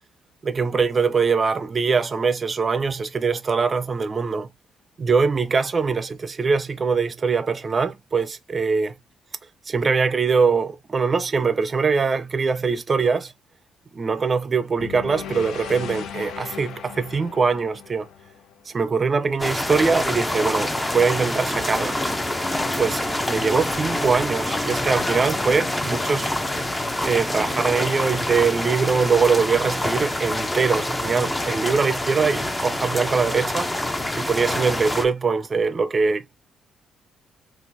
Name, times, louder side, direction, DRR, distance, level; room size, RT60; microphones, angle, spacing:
voice 1, 0.4-4.5 5.0-8.9 9.7-13.3 13.9-18.1 18.7-22.0 22.8-26.3 27.0-36.4, right 5 dB, 35° right, 0.5 m, -22 dB
sound 1, 14.8-19.0, left 8 dB, 75° left, 0.4 m, -37 dB
sound 2, 19.4-35.0, left 1 dB, 15° left, 0.5 m, -26 dB
3.8 x 2.5 x 2.5 m
cardioid pair, 90°, 0 cm